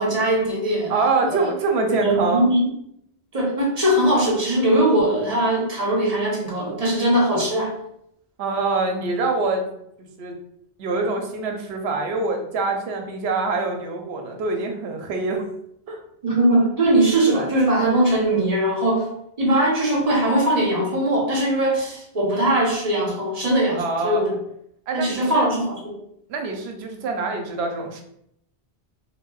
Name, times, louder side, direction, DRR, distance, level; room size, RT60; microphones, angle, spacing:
voice 1, 0.0-0.9 1.3-1.5 1.9-2.7 3.3-7.7 16.2-19.1 19.4-24.4 24.9-26.0, right 1 dB, 40° right, -4 dB, 0.9 m, -20 dB
voice 2, 0.9-2.4 8.4-9.7 10.2-10.3 10.8-15.5 15.9-16.0 23.8-24.2 24.9-25.5 26.3-28.0, right 3 dB, 90° right, 3 dB, 0.8 m, -25 dB
4.1 x 2.0 x 2.3 m, 0.73 s
omnidirectional pair, 1.1 m